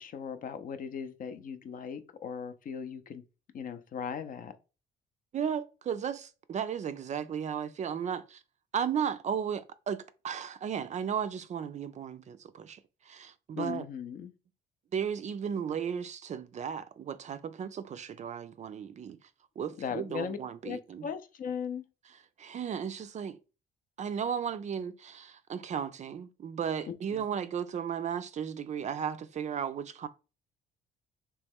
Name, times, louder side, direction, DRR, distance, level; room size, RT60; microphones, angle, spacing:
voice 1, 0.0-3.2 3.5-4.5 13.6-14.3 19.8-20.4 20.6-21.8 26.9-27.3, left 7 dB, 50° left, 0.5 m, -38 dB
voice 2, 5.3-8.4 8.7-13.9 14.9-19.2 19.6-21.1 22.4-23.4 24.0-30.1, right 8 dB, 40° right, 0.4 m, -35 dB
3.1 x 3.0 x 3.5 m
cardioid pair, 85°, 18 cm